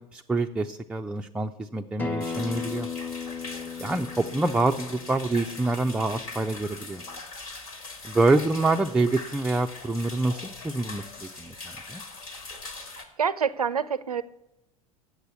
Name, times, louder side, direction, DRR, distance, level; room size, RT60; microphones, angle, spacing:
voice 1, 0.0-2.9 3.8-7.0 8.0-12.0, right 2 dB, 5° right, 4 dB, 0.3 m, -26 dB
Acoustic guitar, 2.0-7.2, left 5 dB, 10° left, 0.8 m, -37 dB
sound 1, 2.2-13.1, left 3 dB, 75° left, 1.7 m, -41 dB
voice 2, 13.2-14.2, right 7 dB, 90° right, 17 dB, 0.5 m, -26 dB
8.1 x 6.7 x 8.2 m, 0.88 s
figure-of-eight pair, 80°, 19 cm